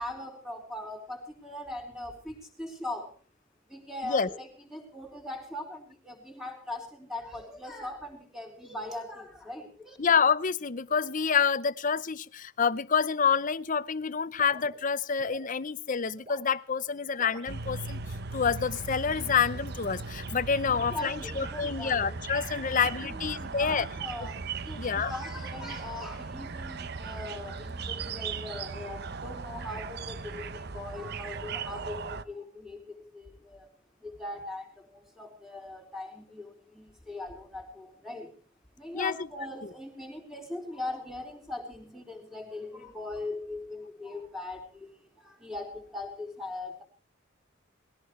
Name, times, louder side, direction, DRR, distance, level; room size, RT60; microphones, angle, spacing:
voice 1, 0.0-3.1 3.7-10.0 20.7-22.2 22.6-22.7 23.1-33.7 34.0-38.4 38.8-46.8, left 2 dB, ahead, 2 dB, 3.8 m, -40 dB
voice 2, 10.0-18.0 18.3-23.9 24.8-25.1 38.9-39.2, left 6 dB, 40° left, 17 dB, 0.6 m, -28 dB
sound 1, 14.4-15.5 16.1-16.5 17.2-17.5, equal, 35° right, 5.2 m, -48 dB
sound 2, 17.5-32.2, right 4 dB, 55° right, 0.8 m, -38 dB
19.5 x 17.5 x 3.2 m, 0.35 s
head